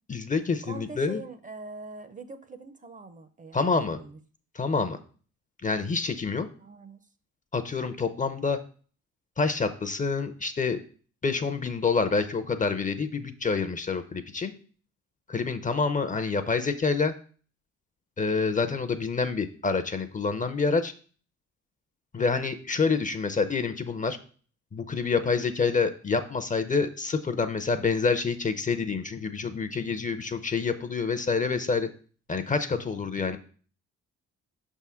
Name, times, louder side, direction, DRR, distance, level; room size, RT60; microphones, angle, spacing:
voice 1, 0.1-1.2 3.5-4.0 4.5-5.0 5.6-6.5 7.5-8.6 9.4-10.8 11.2-14.5 15.3-17.1 18.2-20.9 22.1-24.2 24.7-31.9 32.3-33.4, left 4 dB, 25° left, 10 dB, 0.6 m, -27 dB
voice 2, 0.6-4.2 6.6-7.0, right 3 dB, 25° right, 10 dB, 0.6 m, -43 dB
5.7 x 3.7 x 5.6 m, 0.42 s
cardioid pair, 90°, 30 cm